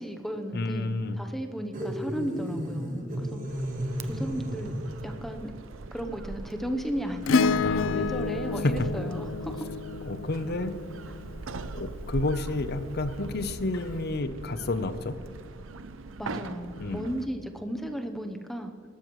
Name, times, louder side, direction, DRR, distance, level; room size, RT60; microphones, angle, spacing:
voice 1, 0.0-3.4 4.1-4.7 5.0-5.5 5.9-9.7 16.2-18.7, equal, ahead, 5 dB, 0.8 m, -34 dB
voice 2, 0.5-1.2 7.6-8.0 10.1-10.7 11.7-15.2 16.8-17.1, left 2 dB, 55° left, 11 dB, 0.8 m, -31 dB
sound 1, 1.7-5.2, equal, 45° right, 1.6 m, -33 dB
sound 2, 3.5-17.3, right 3 dB, 80° right, 0.6 m, -41 dB
Acoustic guitar / Strum, 7.3-11.9 13.7-13.8, left 5 dB, 80° left, 0.4 m, -29 dB
19.5 x 13.0 x 3.1 m, 2.6 s
head